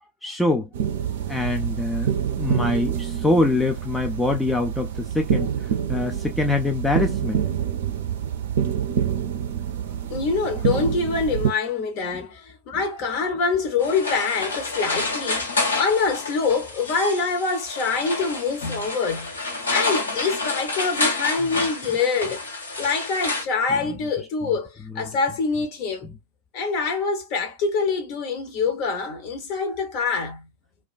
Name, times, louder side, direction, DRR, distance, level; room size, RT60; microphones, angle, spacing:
voice 1, 0.2-0.7 1.3-2.1 2.4-5.5 5.9-7.4, left 2 dB, 5° left, 0.5 m, -24 dB
sound 1, 0.7-11.5, right 8 dB, 60° right, 0.5 m, -26 dB
voice 2, 10.1-19.3 19.7-22.5 22.8-26.1 26.5-30.5, left 4 dB, 45° left, 0.9 m, -25 dB
sound 2, 13.8-23.4, left 3 dB, 75° left, 0.9 m, -28 dB
2.3 x 2.2 x 2.4 m
figure-of-eight pair, 90°, 0 cm